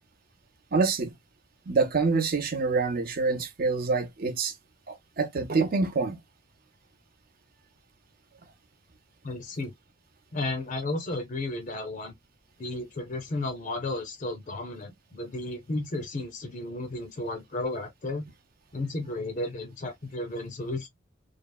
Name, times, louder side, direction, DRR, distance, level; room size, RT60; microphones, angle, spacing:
voice 1, 0.7-1.1 1.7-4.5 4.9-6.2, right 4 dB, 50° right, 0.6 m, -26 dB
voice 2, 9.2-9.7 10.3-12.1 12.6-18.3 18.7-20.9, left 2 dB, 40° left, 0.6 m, -33 dB
3.3 x 2.0 x 2.2 m
head